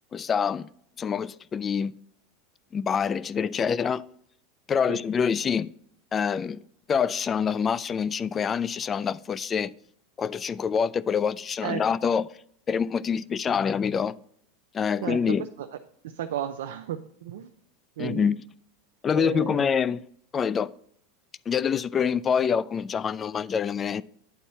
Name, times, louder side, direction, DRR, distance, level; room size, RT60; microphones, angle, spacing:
voice 1, 0.1-0.7 1.0-2.0 2.7-4.1 4.7-5.7 6.1-6.6 6.9-9.7 10.2-12.3 12.7-14.1 14.7-15.5 18.0-18.4 19.0-20.0 20.3-20.7 21.5-24.0, left 7 dB, 25° left, 0.3 m, -26 dB
voice 2, 15.0-15.7 16.1-17.5 18.0-18.3 19.1-19.7, right 10 dB, 80° right, 0.5 m, -33 dB
9.2 x 4.2 x 5.6 m
supercardioid pair, 115°, 0 cm